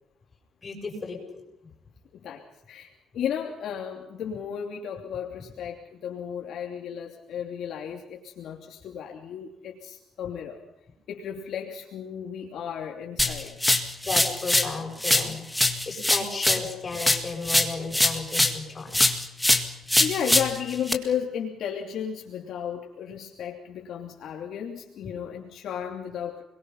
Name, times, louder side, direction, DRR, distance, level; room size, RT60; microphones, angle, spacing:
voice 1, 0.6-1.4 14.0-19.1 25.0-25.1, left 4 dB, 20° left, 0 dB, 7.6 m, -34 dB
voice 2, 2.1-10.6 11.1-13.6 20.0-26.4, left 8 dB, 60° left, 0 dB, 3.1 m, -34 dB
sound 1, 13.2-14.7 15.0-18.6 18.9-20.9, left 1 dB, 5° left, 1.9 m, -23 dB
29.0 x 22.0 x 5.7 m, 0.84 s
cardioid pair, 160°, 0 cm